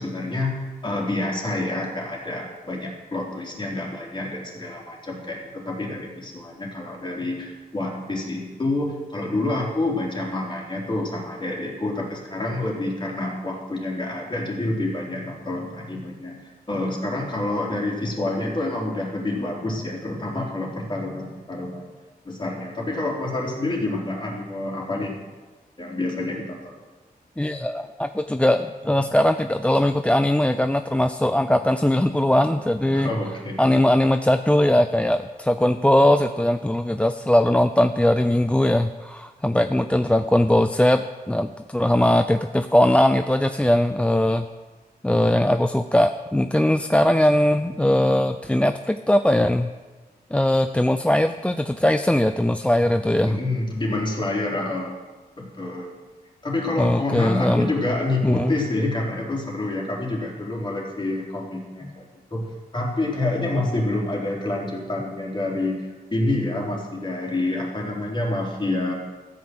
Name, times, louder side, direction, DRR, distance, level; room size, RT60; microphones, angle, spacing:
voice 1, 0.0-21.9 22.2-25.2 25.8-26.7 32.9-33.6 53.2-54.9 55.4-55.9 56.4-62.4 62.7-68.9, left 2 dB, 30° left, -2 dB, 3.9 m, -28 dB
voice 2, 27.4-33.1 33.6-44.4 45.0-49.7 50.3-53.4 56.8-57.7 58.2-58.5, left 1 dB, 5° left, 8 dB, 0.5 m, -20 dB
14.5 x 9.5 x 7.9 m, 1.3 s
wide cardioid pair, 120°, 16 cm